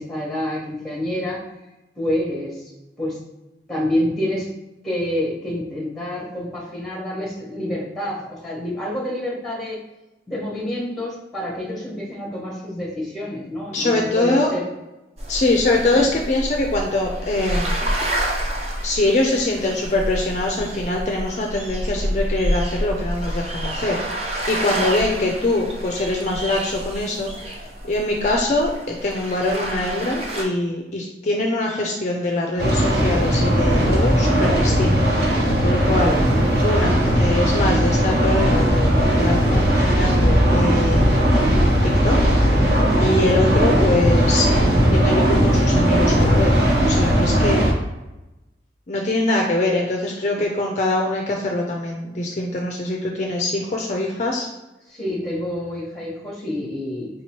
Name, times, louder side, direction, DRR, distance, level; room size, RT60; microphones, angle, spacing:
voice 1, 0.0-1.5 2.0-2.6 3.0-3.2 3.7-4.5 4.8-9.8 10.3-14.7 15.9-16.0 24.6-24.7 54.9-57.1, left 1 dB, ahead, -5 dB, 1.1 m, -27 dB
voice 2, 13.7-14.5 15.3-17.9 18.8-36.2 36.6-41.5 41.8-42.2 43.0-46.5 46.8-47.6 48.9-54.5, left 2 dB, 40° left, 0 dB, 0.4 m, -23 dB
sound 1, 15.2-30.4, equal, 35° right, 0.6 m, -28 dB
sound 2, 32.6-47.7, equal, 65° right, 1.0 m, -18 dB
4.7 x 2.9 x 2.9 m, 1.0 s
head